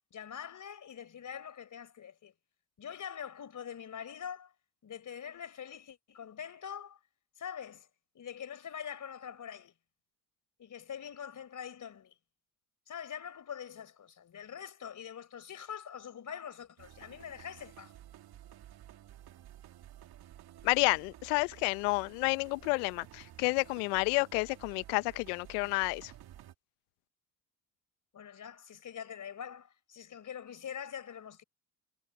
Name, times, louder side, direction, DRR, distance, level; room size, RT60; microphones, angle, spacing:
voice 1, 0.1-2.3 2.8-4.5 4.8-7.0 7.4-7.9 8.1-9.7 10.6-12.1 12.9-17.9 28.1-31.4, left 8 dB, 40° left, 4.2 m, -44 dB
sound 1, 16.8-26.5, right 12 dB, 50° right, 2.4 m, -53 dB
voice 2, 20.6-26.1, left 30 dB, 70° left, 1.1 m, -30 dB
hypercardioid pair, 65°, 48 cm